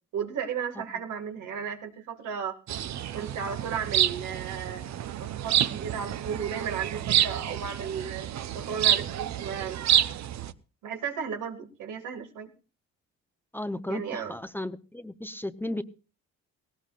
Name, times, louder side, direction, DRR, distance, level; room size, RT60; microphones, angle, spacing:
voice 1, 0.1-2.6 3.1-4.8 5.2-8.3 8.5-9.8 10.8-12.5 13.9-14.3, right 7 dB, 85° right, 4 dB, 2.2 m, -34 dB
sound 1, 2.7-10.5, right 11 dB, 65° right, 0.8 m, -28 dB
voice 2, 13.5-15.8, left 1 dB, 5° left, 10 dB, 0.8 m, -34 dB
18.0 x 17.5 x 2.5 m, 0.34 s
cardioid pair, 90°, 30 cm